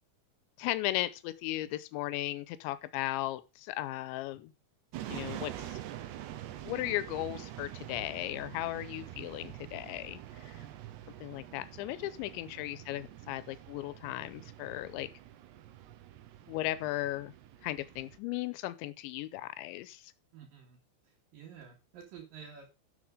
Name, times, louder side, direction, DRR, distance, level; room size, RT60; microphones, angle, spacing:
voice 1, 0.6-4.5 5.1-5.8 6.6-10.6 11.2-15.1 16.5-17.3 17.6-20.1, left 16 dB, 90° left, 3.1 m, -36 dB
sound 1, 4.9-18.2, right 12 dB, 75° right, 3.0 m, -46 dB
voice 2, 10.5-11.0 11.3-11.4 12.5-12.7 20.3-20.8 21.0-22.7, right 7 dB, 55° right, 3.6 m, -52 dB
11.0 x 6.6 x 5.0 m
omnidirectional pair, 5.1 m